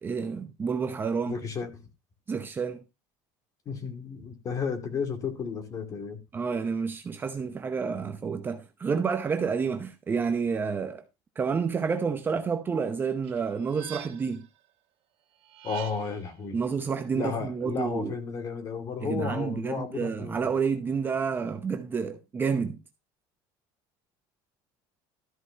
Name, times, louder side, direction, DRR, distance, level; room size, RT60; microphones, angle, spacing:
voice 1, 0.0-1.4 2.3-2.8 6.3-11.0 11.4-14.5 16.5-18.2 19.0-22.8, right 5 dB, 20° right, 0.8 m, -29 dB
voice 2, 1.3-1.9 3.7-6.2 15.6-16.6 17.1-20.5, left 5 dB, 30° left, 2.4 m, -33 dB
sound 1, 13.2-14.5 15.4-16.3, right 13 dB, 60° right, 2.0 m, -44 dB
13.0 x 4.8 x 5.5 m
cardioid pair, 160°, 11 cm